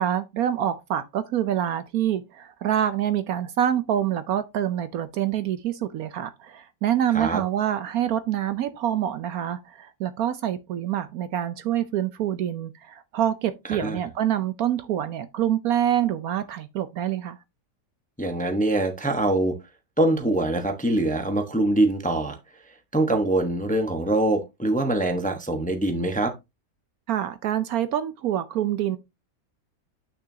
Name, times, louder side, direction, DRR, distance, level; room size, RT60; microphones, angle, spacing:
voice 1, 0.0-17.4 27.1-29.0, right 10 dB, 70° right, 1.0 m, -26 dB
voice 2, 18.2-19.5 20.0-22.4 22.9-26.3, right 2 dB, 5° left, 0.8 m, -23 dB
9.1 x 6.0 x 2.7 m
omnidirectional pair, 1.8 m